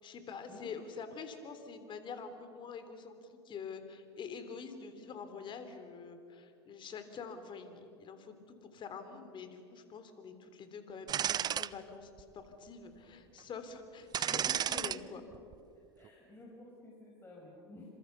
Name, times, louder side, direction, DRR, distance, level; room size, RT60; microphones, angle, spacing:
voice 1, 0.0-15.2, left 5 dB, 35° left, 9 dB, 3.6 m, -46 dB
sound 1, 11.1-11.7 12.2-12.3 14.1-15.0 15.3-15.5, right 9 dB, 30° right, 0.7 m, -32 dB
voice 2, 14.5-14.8 16.0-17.9, left 2 dB, 15° left, -3 dB, 6.1 m, -52 dB
28.5 x 26.5 x 6.9 m, 2.5 s
hypercardioid pair, 95°, 14 cm